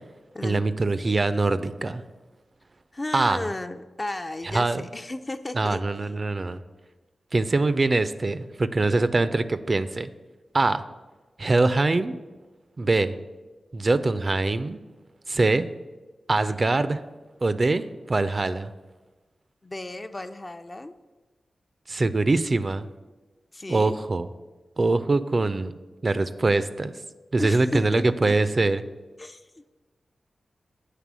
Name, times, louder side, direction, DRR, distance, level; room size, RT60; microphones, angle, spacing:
voice 1, 0.4-2.0 3.1-3.5 4.5-4.9 5.5-6.6 7.3-10.1 10.5-10.8 11.4-12.1 12.8-13.2 13.7-14.8 15.3-15.6 16.3-17.0 17.4-18.7 21.9-22.9 23.7-24.3 24.8-25.7 26.0-26.9 27.3-28.8, right 3 dB, 45° right, 12 dB, 0.3 m, -23 dB
voice 2, 2.9-5.8 19.6-20.9 23.5-24.0 27.4-28.3 29.2-29.7, left 2 dB, 35° left, 8 dB, 0.4 m, -34 dB
7.5 x 3.3 x 6.1 m, 1.2 s
cardioid pair, 40°, 0 cm